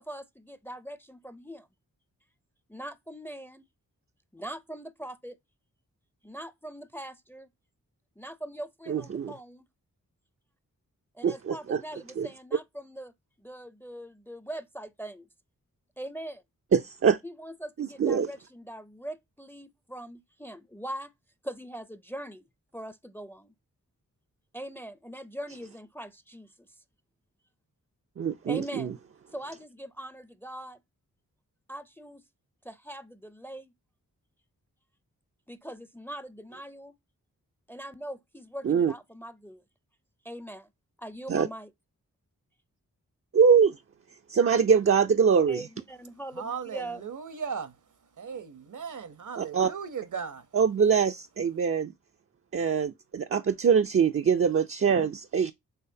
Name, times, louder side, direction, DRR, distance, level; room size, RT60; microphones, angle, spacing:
voice 1, 0.0-1.7 2.7-3.7 4.3-5.4 6.2-7.5 8.2-9.6 11.1-13.1 13.4-15.3 16.0-16.4 17.2-21.1 21.4-22.4 22.7-23.5 24.5-26.7 28.4-29.0 29.3-30.8 31.7-32.2 32.6-33.7 35.5-36.9 37.7-39.6 40.2-40.7 41.0-41.7 45.5-47.0, right 1 dB, 5° left, 0.5 m, -41 dB
voice 2, 8.9-9.3 11.2-11.8 12.2-12.3 16.7-17.2 17.8-18.3 28.2-28.9 38.6-38.9 41.3-41.5 43.3-43.8 44.3-45.7 49.4-49.7 50.5-51.9 52.5-55.5, right 6 dB, 40° right, 0.5 m, -23 dB
voice 3, 46.3-50.5, right 6 dB, 60° right, 0.8 m, -37 dB
5.7 x 3.3 x 2.7 m
cardioid pair, 45°, 35 cm